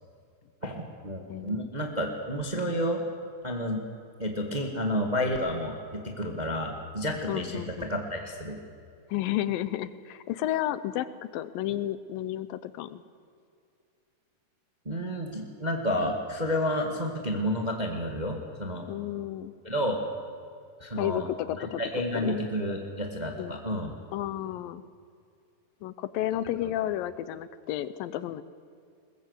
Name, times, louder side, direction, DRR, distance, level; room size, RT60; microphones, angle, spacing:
voice 1, 0.6-3.0 3.4-3.8 4.2-8.6 14.8-18.9 19.6-20.0 20.8-21.3 21.6-23.9, equal, 20° right, 3 dB, 1.2 m, -30 dB
voice 2, 1.3-1.6 7.3-7.9 9.1-13.0 18.9-19.5 21.0-21.8 22.1-22.4 23.4-23.6 24.1-24.8 25.8-28.4, left 13 dB, 80° left, 15 dB, 2.5 m, -32 dB
21.5 x 21.0 x 8.2 m, 2.3 s
omnidirectional pair, 4.1 m